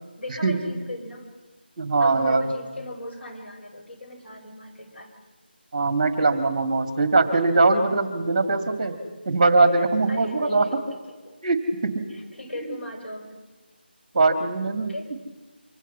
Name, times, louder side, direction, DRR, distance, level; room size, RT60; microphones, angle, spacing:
voice 1, 0.2-1.3 2.0-5.1 10.1-11.0 11.3-11.4 12.1-13.4 14.8-15.1, left 1 dB, 85° left, 3 dB, 5.1 m, -38 dB
voice 2, 1.8-2.5 5.7-9.0 9.3-10.7 11.4-11.9 14.1-14.9, right 3 dB, 30° right, 7 dB, 2.1 m, -21 dB
25.5 x 25.0 x 5.6 m, 1.2 s
figure-of-eight pair, 170°, 6 cm